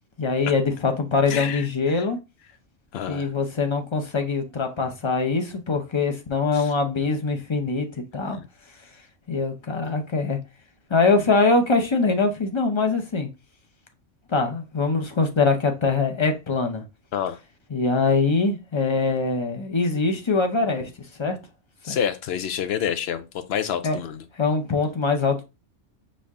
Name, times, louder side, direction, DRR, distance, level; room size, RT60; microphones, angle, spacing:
voice 1, 0.2-2.2 3.1-7.9 8.1-8.4 9.3-10.4 10.9-13.3 14.3-16.8 17.7-21.4 21.9-22.0 23.8-24.0 24.3-25.4, left 4 dB, 30° left, 0.6 m, -23 dB
voice 2, 1.3-2.0 2.9-3.3 6.5-6.7 8.3-8.4 17.1-17.4 21.8-24.2, left 8 dB, 65° left, 0.8 m, -28 dB
5.3 x 2.7 x 3.5 m
omnidirectional pair, 1.3 m